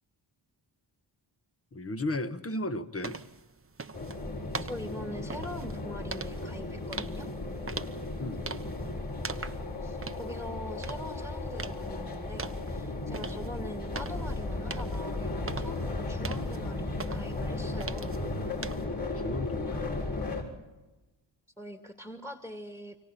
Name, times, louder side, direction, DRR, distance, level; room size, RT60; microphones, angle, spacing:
voice 1, 1.7-3.2 8.2-8.4 19.1-20.4, left 2 dB, 30° left, 10 dB, 1.4 m, -35 dB
sound 1, 3.0-18.9, right 4 dB, 25° right, 1.0 m, -43 dB
sound 2, 3.9-20.4, left 2 dB, 50° left, 6.3 m, -35 dB
voice 2, 4.6-7.3 9.8-18.2 21.6-23.0, equal, 10° left, 4 dB, 2.2 m, -43 dB
29.5 x 24.0 x 4.3 m, 1.1 s
cardioid pair, 50°, 50 cm